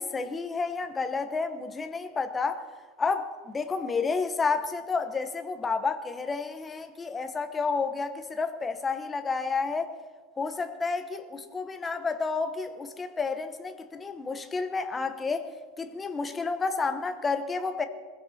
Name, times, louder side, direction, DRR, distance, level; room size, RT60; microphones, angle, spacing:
voice 1, 0.0-2.6 3.0-9.9 10.4-15.5 15.8-17.8, left 4 dB, 10° left, 8 dB, 1.0 m, -30 dB
21.5 x 15.5 x 4.2 m, 1.4 s
supercardioid pair, 175°, 0 cm